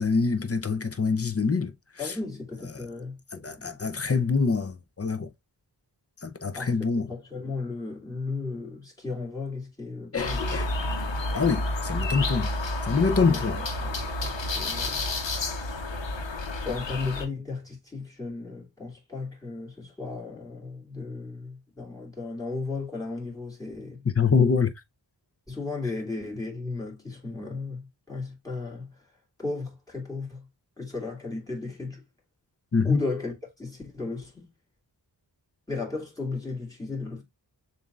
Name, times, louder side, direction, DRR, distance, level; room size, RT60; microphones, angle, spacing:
voice 1, 0.0-1.7 2.0-2.1 3.3-5.3 6.2-7.1 10.1-10.7 11.3-12.5 12.8-13.6 24.1-24.7 32.7-33.0, left 5 dB, 35° left, 0.7 m, -25 dB
voice 2, 2.0-3.8 6.6-10.4 13.1-15.0 16.6-24.0 25.5-29.0 29.4-30.5 30.8-32.0 32.8-34.5 35.7-37.2, left 3 dB, 10° left, 2.6 m, -35 dB
sound 1, 10.2-17.3, left 2 dB, 80° left, 1.1 m, -30 dB
7.0 x 2.7 x 2.4 m
wide cardioid pair, 75°, 44 cm